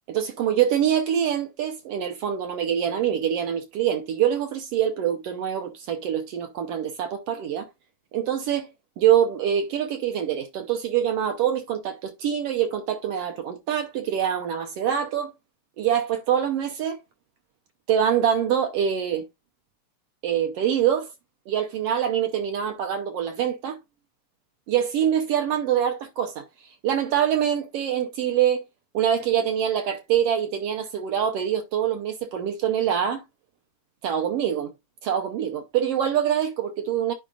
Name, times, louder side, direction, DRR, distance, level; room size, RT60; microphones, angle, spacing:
voice 1, 0.1-7.7 8.1-8.7 9.0-15.3 15.8-17.0 17.9-19.2 20.2-21.1 21.5-23.8 24.7-26.4 26.8-28.6 28.9-33.2 34.0-34.7 35.0-37.1, right 9 dB, 70° right, 1.5 m, -24 dB
11.0 x 4.9 x 2.4 m
omnidirectional pair, 3.3 m